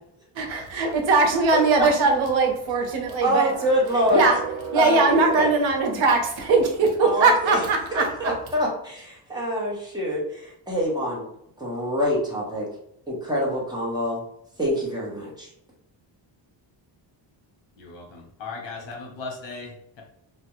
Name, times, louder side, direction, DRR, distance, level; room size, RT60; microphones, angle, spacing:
voice 1, 0.3-8.3, right 3 dB, 80° right, 2 dB, 0.7 m, -21 dB
voice 2, 3.2-4.2 4.8-5.5 7.0-7.6 7.9-11.2 11.6-12.7 13.1-14.2 14.6-15.5, equal, 10° right, -5 dB, 0.6 m, -25 dB
voice 3, 17.8-20.0, left 3 dB, 70° left, 0 dB, 0.9 m, -37 dB
2.3 x 2.1 x 2.9 m, 0.75 s
wide cardioid pair, 175°, 45 cm